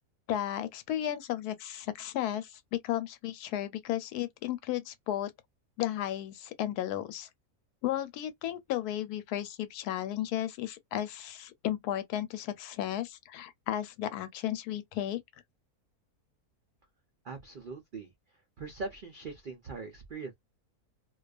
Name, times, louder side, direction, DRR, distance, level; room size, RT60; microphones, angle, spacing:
voice 1, 0.3-5.3 5.8-7.3 7.8-15.2, left 12 dB, 85° left, 1.1 m, -34 dB
voice 2, 17.2-18.1 18.6-20.3, right 4 dB, 75° right, 0.4 m, -41 dB
2.4 x 2.3 x 2.3 m
omnidirectional pair, 1.6 m